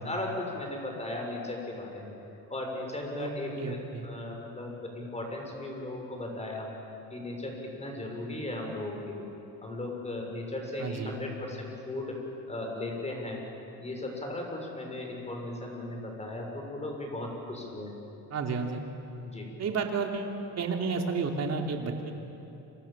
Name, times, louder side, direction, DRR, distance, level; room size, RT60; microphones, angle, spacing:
voice 1, 0.0-2.1 2.5-3.8 4.0-6.7 7.1-9.3 9.6-12.2 12.5-13.4 13.8-17.9 19.2-19.5, left 2 dB, 20° left, 1 dB, 7.1 m, -36 dB
voice 2, 3.1-4.1 10.8-11.2 18.3-18.8 19.6-22.1, right 4 dB, 45° right, 2 dB, 3.4 m, -32 dB
29.0 x 26.0 x 7.6 m, 2.9 s
cardioid pair, 115°, 36 cm